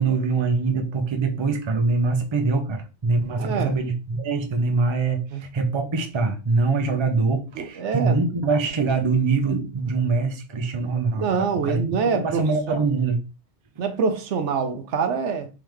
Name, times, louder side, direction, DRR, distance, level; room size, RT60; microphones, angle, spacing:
voice 1, 0.0-11.8 12.1-13.2, right 4 dB, 35° right, 0.5 m, -23 dB
voice 2, 3.4-3.7 5.3-5.4 7.6-8.2 11.1-12.8 13.8-15.5, right 5 dB, 80° right, 1.0 m, -25 dB
3.7 x 3.3 x 3.1 m
omnidirectional pair, 1.2 m